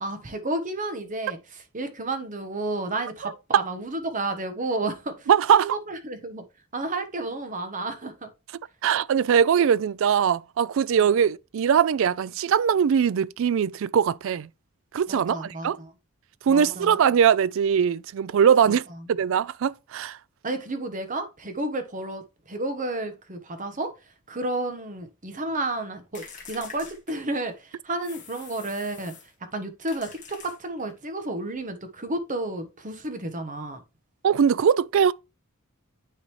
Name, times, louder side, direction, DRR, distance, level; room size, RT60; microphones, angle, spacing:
voice 1, 0.0-6.4 6.7-8.3 15.1-15.9 16.5-17.0 18.7-18.8 20.4-23.9 24.3-29.1 29.5-33.8, right 2 dB, 35° right, 1.2 m, -31 dB
voice 2, 3.2-3.6 5.3-5.6 8.8-14.5 14.9-15.8 16.4-18.8 19.1-20.2 34.2-35.1, right 8 dB, 65° right, 0.3 m, -21 dB
sound 1, 26.1-27.6 28.0-29.3 29.9-31.0, left 6 dB, 35° left, 2.0 m, -45 dB
9.9 x 4.0 x 3.1 m
head